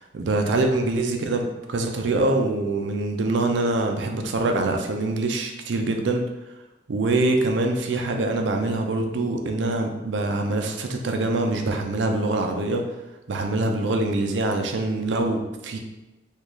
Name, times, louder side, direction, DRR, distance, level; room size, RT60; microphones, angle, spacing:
voice 1, 0.0-6.2 6.9-12.8 13.3-15.8, right 2 dB, 75° right, 4 dB, 0.4 m, -24 dB
3.0 x 2.4 x 3.7 m, 1.0 s
head